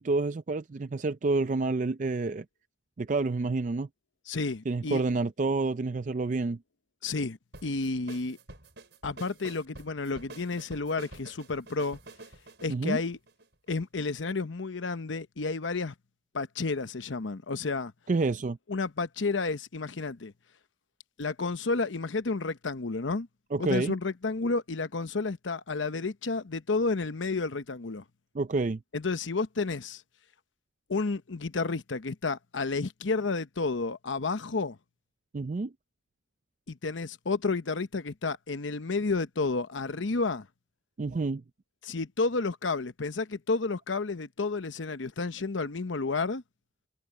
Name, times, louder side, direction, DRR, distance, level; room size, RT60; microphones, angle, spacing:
voice 1, 0.0-2.4 3.0-3.9 4.7-6.6 12.7-13.0 18.1-18.6 23.5-23.9 28.3-28.8 35.3-35.7 41.0-41.4, right 3 dB, 40° right, 0.4 m, -28 dB
voice 2, 4.3-5.0 7.0-8.4 9.0-12.0 12.6-13.2 13.7-15.9 16.3-17.9 18.7-20.3 21.2-23.3 23.6-28.0 28.9-30.0 30.9-34.8 36.7-40.5 41.8-46.4, left 3 dB, 85° left, 0.9 m, -31 dB
sound 1, 7.5-13.8, right 2 dB, 65° right, 5.5 m, -48 dB
head